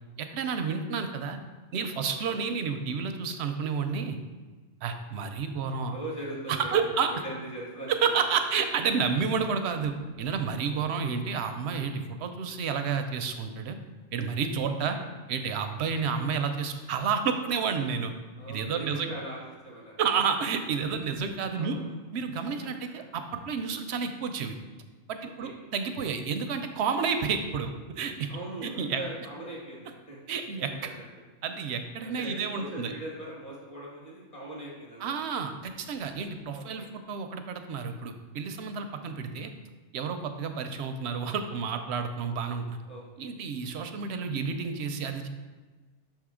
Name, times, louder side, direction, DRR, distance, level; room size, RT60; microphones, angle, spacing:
voice 1, 0.2-1.4 1.7-4.2 4.8-5.9 6.5-7.1 7.9-13.8 14.1-15.0 15.3-18.1 18.5-19.1 20.0-21.8 22.1-24.6 25.1-28.3 28.6-29.0 30.3-30.7 31.4-32.9 35.0-39.5 39.9-42.8 43.2-45.3, right 6 dB, 70° right, 7 dB, 0.8 m, -30 dB
voice 2, 2.0-2.4 5.7-8.3 10.7-10.9 14.6-15.1 18.4-20.0 21.5-21.9 25.2-25.5 28.3-31.0 32.0-35.1 36.5-36.9 42.9-43.3, right 1 dB, 35° left, -5 dB, 1.9 m, -41 dB
6.2 x 3.6 x 4.9 m, 1.3 s
omnidirectional pair, 1.3 m